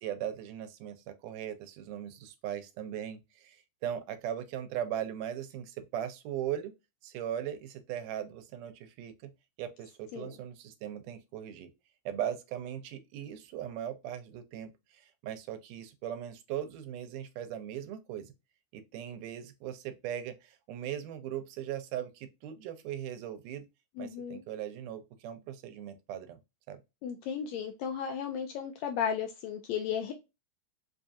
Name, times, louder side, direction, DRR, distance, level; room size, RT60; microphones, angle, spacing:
voice 1, 0.0-6.7 7.0-9.3 9.6-11.7 12.1-18.3 18.7-23.7 24.0-26.4 26.7-26.8, right 10 dB, 85° right, 2.2 m, -39 dB
voice 2, 24.0-24.4 27.0-30.1, left 8 dB, 80° left, 1.6 m, -34 dB
5.1 x 2.4 x 2.6 m
omnidirectional pair, 3.6 m